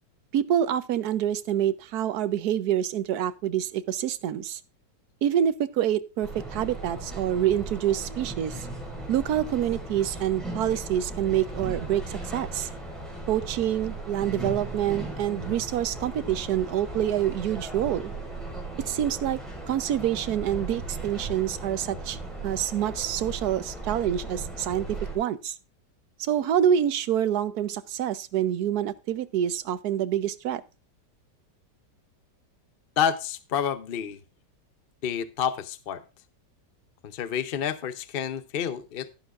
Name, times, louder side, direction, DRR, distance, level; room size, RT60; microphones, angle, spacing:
voice 1, 0.3-4.6 5.2-8.6 9.1-12.7 13.3-18.1 18.9-19.4 19.7-22.2 22.4-25.5 26.2-30.6, right 10 dB, 65° right, 1.2 m, -27 dB
sound 1, 6.2-25.2, right 2 dB, ahead, 4.7 m, -37 dB
voice 2, 33.0-34.2 35.0-36.0 37.0-39.1, left 8 dB, 50° left, 0.6 m, -29 dB
12.0 x 11.0 x 2.5 m
omnidirectional pair, 1.9 m